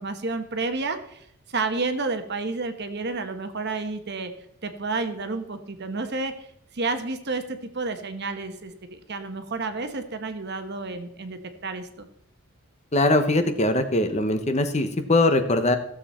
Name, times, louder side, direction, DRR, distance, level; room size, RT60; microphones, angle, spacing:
voice 1, 0.0-4.3 4.6-6.5 6.7-12.1, right 3 dB, 50° right, 8 dB, 1.1 m, -30 dB
voice 2, 12.9-15.8, left 2 dB, 30° left, 8 dB, 0.9 m, -21 dB
15.0 x 7.3 x 4.3 m, 0.72 s
head